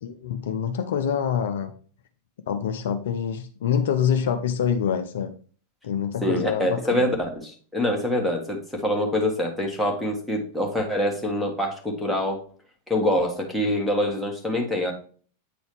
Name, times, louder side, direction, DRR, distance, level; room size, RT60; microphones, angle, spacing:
voice 1, 0.0-1.7 2.5-5.3 5.8-7.1, left 8 dB, 60° left, 7 dB, 0.5 m, -26 dB
voice 2, 6.2-7.1 7.3-12.4 12.9-14.9, left 1 dB, ahead, -1 dB, 1.6 m, -25 dB
8.2 x 3.9 x 3.2 m, 0.42 s
figure-of-eight pair, 90°, 0 cm